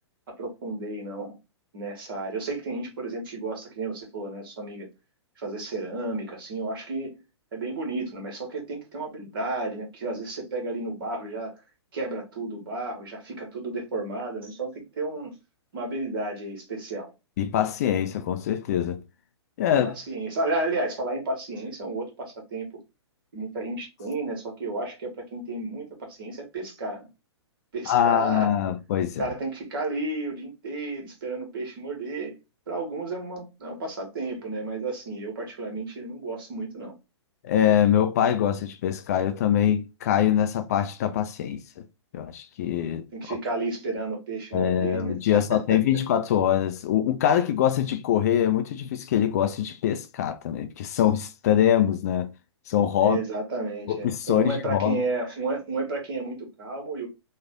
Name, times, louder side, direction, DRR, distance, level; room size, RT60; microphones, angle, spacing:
voice 1, 0.3-1.3 1.7-4.9 5.4-7.2 7.5-11.6 11.9-15.3 15.7-17.1 19.8-22.8 23.3-27.1 27.7-28.5 29.2-32.3 32.7-37.0 43.1-45.4 45.7-45.8 53.0-57.1, right 2 dB, 50° right, 1.5 m, -32 dB
voice 2, 17.4-19.0 19.6-20.0 27.9-29.3 37.4-41.6 42.1-43.1 44.5-52.3 52.7-53.2 53.9-55.0, left 10 dB, 35° left, 0.3 m, -23 dB
3.1 x 2.4 x 3.6 m
figure-of-eight pair, 115°, 15 cm